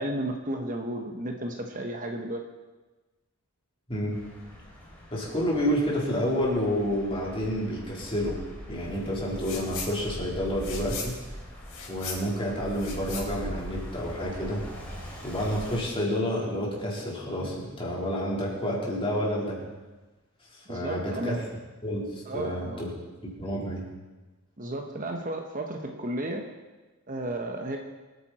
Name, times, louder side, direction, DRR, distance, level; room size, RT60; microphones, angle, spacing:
voice 1, 0.0-2.4 20.7-21.4 22.3-22.9 24.6-26.4 27.1-27.8, right 1 dB, 40° right, 3 dB, 1.2 m, -33 dB
voice 2, 3.9-4.2 5.1-8.4 8.7-11.2 11.9-14.6 15.2-19.6 20.7-21.4 21.8-22.9 23.4-23.8, equal, 25° left, -5 dB, 4.1 m, -29 dB
sound 1, 4.1-15.8, equal, 5° left, 3.4 m, -41 dB
sound 2, 9.4-9.9 10.2-14.2, left 5 dB, 80° left, 4.7 m, -39 dB
25.5 x 9.5 x 4.3 m, 1.2 s
head